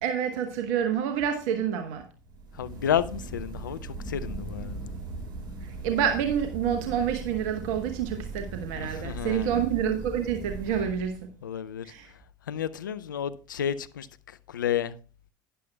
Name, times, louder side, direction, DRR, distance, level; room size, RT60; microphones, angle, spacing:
voice 1, 0.0-2.0 5.8-11.2 11.8-12.1, right 8 dB, 65° right, 1.0 m, -28 dB
sound 1, 2.2-11.4, right 3 dB, 45° right, 4.7 m, -39 dB
voice 2, 2.6-3.8 4.1-4.9 8.7-9.5 11.4-11.9 12.5-14.1 14.5-14.9, left 9 dB, 85° left, 0.4 m, -30 dB
12.0 x 10.0 x 2.3 m
hypercardioid pair, 70°, 10 cm